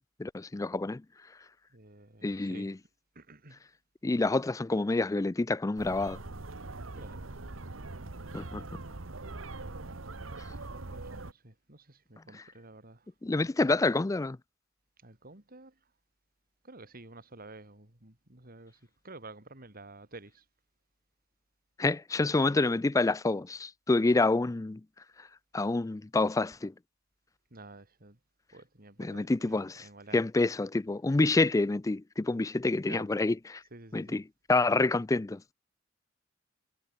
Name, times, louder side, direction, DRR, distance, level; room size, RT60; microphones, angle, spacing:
voice 1, 0.2-1.0 2.2-2.7 4.0-6.2 8.3-8.6 13.2-14.4 21.8-24.8 25.5-26.7 29.0-29.8 30.1-33.6 33.9-34.2 34.5-35.4, left 3 dB, 15° left, 0.4 m, -27 dB
voice 2, 1.7-2.9 3.1-3.7 6.9-7.2 8.5-8.8 10.3-13.5 15.0-15.9 16.6-20.5 27.5-28.2 28.5-30.2 32.9-33.1 33.7-34.2, right 2 dB, 50° right, 3.5 m, -51 dB
sound 1, 5.8-11.3, right 2 dB, 90° right, 1.5 m, -42 dB
head